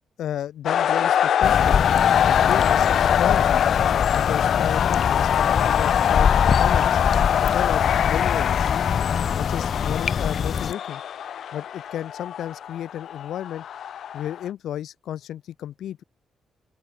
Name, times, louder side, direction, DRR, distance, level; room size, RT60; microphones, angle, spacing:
voice 1, 0.2-1.8 2.2-3.6 4.1-6.9 7.4-8.8 9.3-11.0 11.5-13.6 14.1-16.0, left 11 dB, 75° left, 4.0 m, -32 dB
sound 1, 0.7-14.5, left 9 dB, 60° left, 0.3 m, -23 dB
sound 2, 1.4-10.7, left 6 dB, 40° left, 2.7 m, -25 dB
open air
wide cardioid pair, 165°, 0 cm